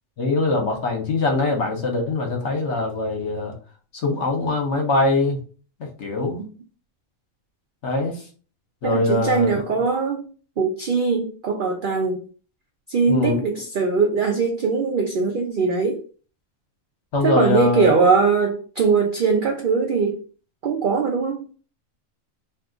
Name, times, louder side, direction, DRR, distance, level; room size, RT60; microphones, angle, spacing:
voice 1, 0.2-3.5 4.0-5.4 6.0-6.4 7.8-8.2 8.8-9.5 13.1-13.4 17.1-17.9, left 2 dB, 60° left, 3 dB, 1.0 m, -22 dB
voice 2, 8.8-10.3 10.6-12.2 12.9-16.0 17.2-20.2 20.6-21.5, right 4 dB, 90° right, 2 dB, 0.4 m, -21 dB
2.6 x 2.3 x 3.6 m, 0.39 s
omnidirectional pair, 1.4 m